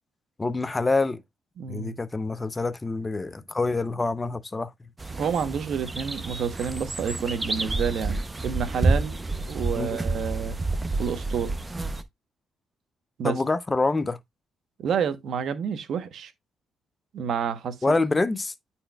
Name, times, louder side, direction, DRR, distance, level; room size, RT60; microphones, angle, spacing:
voice 1, 0.4-1.2 1.7-4.7 9.7-10.0 13.2-14.2 17.8-18.5, left 3 dB, 20° left, 0.6 m, -26 dB
voice 2, 1.6-1.9 5.1-9.2 9.5-10.6 11.0-11.5 13.2-13.4 14.8-16.3 17.1-17.8, right 7 dB, 65° right, 0.9 m, -29 dB
sound 1, 5.0-12.0, right 2 dB, 20° right, 0.7 m, -29 dB
9.9 x 4.3 x 2.3 m
cardioid pair, 90°, 0 cm